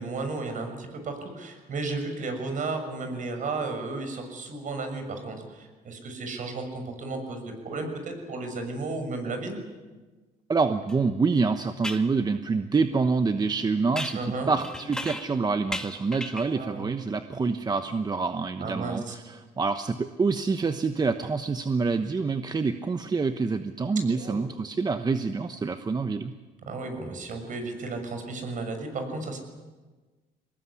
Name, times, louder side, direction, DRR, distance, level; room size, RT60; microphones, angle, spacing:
voice 1, 0.0-9.6 14.1-14.5 16.4-16.9 18.6-19.1 24.1-24.4 26.6-29.4, right 3 dB, 50° right, 6 dB, 6.6 m, -34 dB
voice 2, 10.5-26.3, right 4 dB, 25° right, 8 dB, 1.1 m, -27 dB
sound 1, 10.9-11.0 11.8-12.1 14.0-15.4 15.7-16.6, left 1 dB, 5° left, 2.0 m, -36 dB
24.5 x 20.0 x 9.8 m, 1.3 s
cardioid pair, 110°, 17 cm